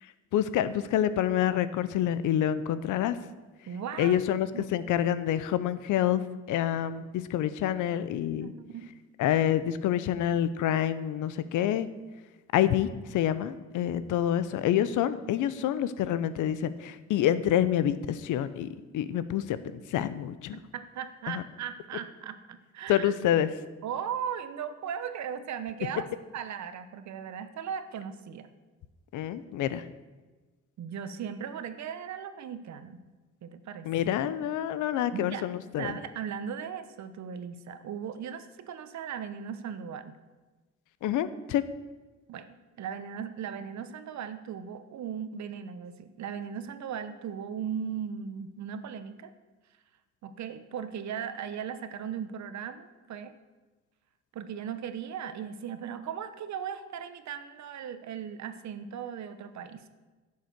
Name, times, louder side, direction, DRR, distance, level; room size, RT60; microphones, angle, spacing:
voice 1, 0.3-3.2 4.0-6.2 6.5-8.5 9.2-11.9 12.5-18.7 18.9-20.6 21.3-21.4 22.9-23.5 29.1-29.8 33.8-36.0 41.0-41.6, left 11 dB, 85° left, 14 dB, 0.7 m, -27 dB
voice 2, 3.7-4.2 4.5-4.8 8.4-8.9 20.5-23.1 23.8-26.1 26.3-28.5 30.8-33.0 33.4-33.9 35.1-35.5 35.8-40.1 42.3-42.5 42.8-49.3 50.2-53.3 54.3-59.8, right 8 dB, 65° right, 11 dB, 1.0 m, -37 dB
11.0 x 6.7 x 6.7 m, 1.3 s
cardioid pair, 90°, 30 cm